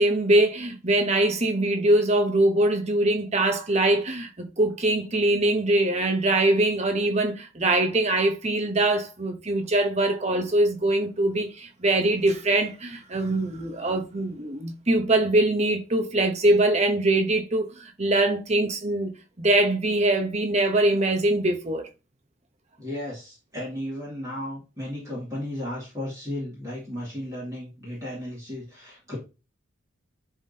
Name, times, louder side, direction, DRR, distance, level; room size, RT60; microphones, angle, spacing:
voice 1, 0.0-21.9, right 1 dB, 30° right, 0.9 m, -23 dB
voice 2, 22.8-29.2, left 1 dB, 15° right, 2.4 m, -34 dB
11.0 x 3.6 x 2.8 m
head